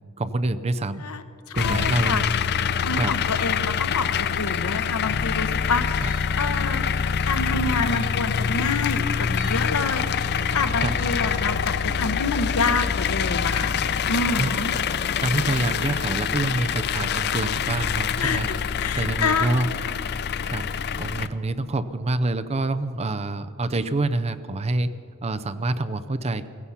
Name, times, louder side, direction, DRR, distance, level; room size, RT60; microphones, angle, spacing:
voice 1, 0.2-1.0 1.6-2.4 3.0-3.2 10.8-10.9 14.4-14.8 15.2-18.5 19.0-19.7 20.4-20.6 21.0-24.9 25.2-26.5, right 2 dB, 30° right, 12 dB, 0.5 m, -26 dB
voice 2, 1.5-2.2 2.8-13.8 14.1-14.7 15.5-15.7 18.2-18.4 18.8-20.0, left 4 dB, 80° left, 10 dB, 1.0 m, -28 dB
sound 1, 1.6-21.3, left 7 dB, 50° left, 0.5 m, -25 dB
sound 2, 4.5-4.8 6.0-6.3 7.3-7.4 7.9-8.2 9.4-9.7 11.0-11.2, right 7 dB, 55° right, 2.2 m, -47 dB
16.0 x 15.5 x 5.7 m, 2.3 s
head